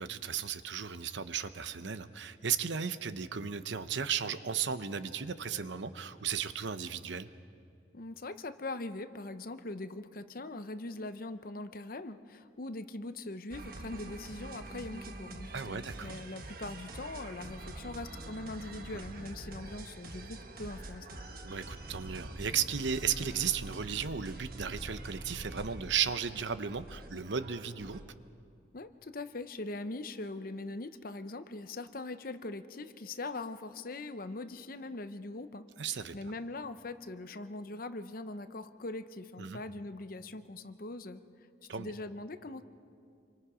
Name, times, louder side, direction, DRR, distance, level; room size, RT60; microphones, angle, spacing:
voice 1, 0.0-7.3 15.5-16.1 21.4-28.0 35.8-36.1 39.4-39.6 41.7-41.9, right 7 dB, 70° right, 12 dB, 0.8 m, -35 dB
voice 2, 7.9-21.2 28.7-35.6 36.1-41.2 41.8-42.6, left 2 dB, 50° left, 11 dB, 0.8 m, -41 dB
sound 1, 13.5-28.1, right 2 dB, 50° right, 1.4 m, -45 dB
27.5 x 24.0 x 5.0 m, 2.4 s
head